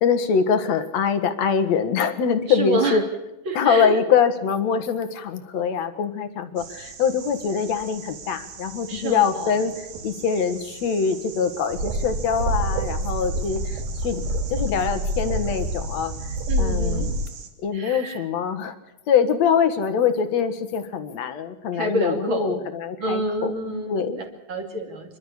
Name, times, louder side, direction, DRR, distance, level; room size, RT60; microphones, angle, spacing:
voice 1, 0.0-3.0 3.5-9.7 10.0-14.2 14.5-16.1 16.6-17.1 17.6-18.7 19.1-23.5 23.9-24.2, left 6 dB, 55° left, 9 dB, 2.4 m, -23 dB
voice 2, 2.5-3.0 3.5-4.0 8.9-9.6 16.5-17.2 17.7-18.3 21.7-22.7 23.0-25.2, right 2 dB, 35° right, 4 dB, 3.0 m, -28 dB
sound 1, 6.6-17.5, right 6 dB, 80° right, 4.0 m, -42 dB
sound 2, 11.7-17.3, right 1 dB, 60° right, 4.7 m, -27 dB
27.5 x 12.5 x 8.5 m, 0.99 s
omnidirectional pair, 4.1 m